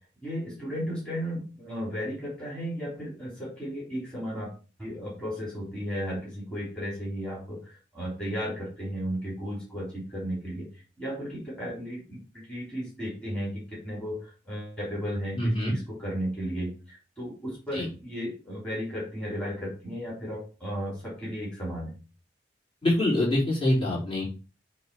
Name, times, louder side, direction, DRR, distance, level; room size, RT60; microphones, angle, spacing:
voice 1, 0.2-4.5 4.8-10.7 11.0-21.9, equal, 5° left, -7 dB, 3.8 m, -34 dB
voice 2, 15.3-15.7 17.7-17.9 22.8-24.2, left 1 dB, 30° left, -6 dB, 4.0 m, -25 dB
8.4 x 3.5 x 5.5 m, 0.34 s
head